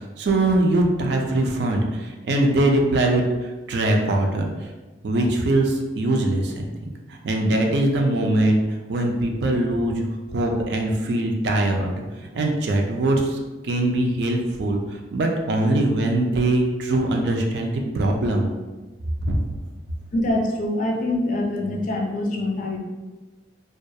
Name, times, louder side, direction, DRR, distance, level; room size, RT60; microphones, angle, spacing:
voice 1, 0.0-3.2 3.7-4.5 5.0-6.7 7.1-8.6 8.9-10.0 10.3-12.0 12.3-13.4 13.6-14.8 15.1-18.5 19.3-19.4, right 1 dB, 65° right, 2 dB, 0.4 m, -22 dB
voice 2, 20.1-22.8, left 1 dB, 45° left, 1 dB, 0.3 m, -24 dB
2.3 x 2.2 x 2.6 m, 1.2 s
head